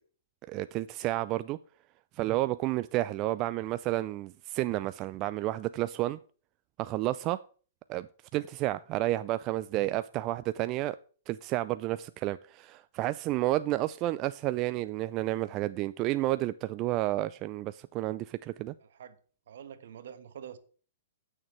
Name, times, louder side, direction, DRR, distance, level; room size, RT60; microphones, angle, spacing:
voice 1, 0.5-1.6 2.2-6.2 6.8-7.4 7.9-8.1 8.3-11.0 11.3-18.7, right 16 dB, 35° right, 0.3 m, -31 dB
voice 2, 18.8-19.2 19.5-20.6, right 8 dB, 70° right, 1.2 m, -46 dB
16.0 x 6.5 x 3.2 m
hypercardioid pair, 125°, 0 cm